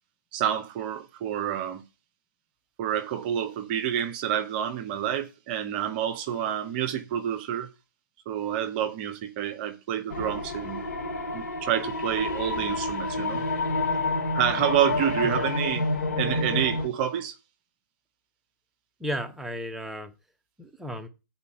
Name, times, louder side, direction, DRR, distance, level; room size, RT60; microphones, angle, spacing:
voice 1, 0.3-1.8 2.8-7.7 8.3-10.8 11.3-13.4 14.3-15.8 16.1-17.3, right 10 dB, 30° right, 0.9 m, -28 dB
sound 1, 10.1-16.9, left 2 dB, 50° left, 2.9 m, -29 dB
voice 2, 19.0-20.1 20.6-21.1, equal, ahead, 1.0 m, -34 dB
8.3 x 4.3 x 6.8 m
figure-of-eight pair, 130°, 10 cm